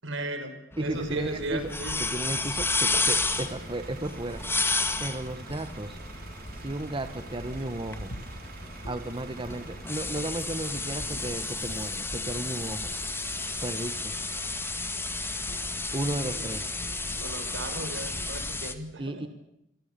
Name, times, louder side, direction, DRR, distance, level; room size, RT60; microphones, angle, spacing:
voice 1, 0.0-0.5 0.8-2.0 16.2-16.6 17.2-19.3, right 2 dB, 70° right, 8 dB, 6.0 m, -35 dB
sound 1, 0.7-18.7, left 3 dB, 10° left, 2.1 m, -33 dB
voice 2, 0.8-1.7 2.0-4.4 5.0-6.0 6.5-8.1 8.9-12.9 13.6-14.1 15.9-16.7 19.0-19.3, right 1 dB, 25° right, 9 dB, 1.4 m, -34 dB
sound 2, 0.9-18.7, equal, 60° left, 7.7 m, -45 dB
Bus / Idling, 2.5-18.5, right 4 dB, 50° right, 5.0 m, -48 dB
27.5 x 24.0 x 6.9 m, 0.82 s
head